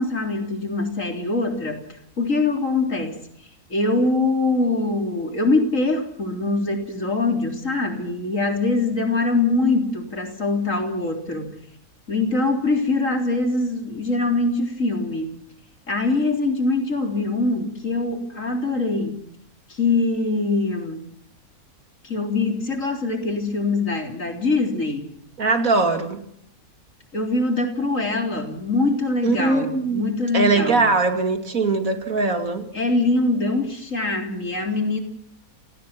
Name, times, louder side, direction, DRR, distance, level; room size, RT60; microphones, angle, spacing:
voice 1, 0.0-1.8 2.2-3.2 3.7-11.5 12.1-15.3 15.9-19.2 19.7-21.0 22.0-25.1 27.1-30.9 32.7-35.0, left 3 dB, 55° left, 4 dB, 4.1 m, -23 dB
voice 2, 25.4-26.2 29.2-30.0 30.3-32.7, right 3 dB, 60° right, 7 dB, 3.0 m, -21 dB
29.5 x 18.5 x 6.0 m, 0.66 s
omnidirectional pair, 1.6 m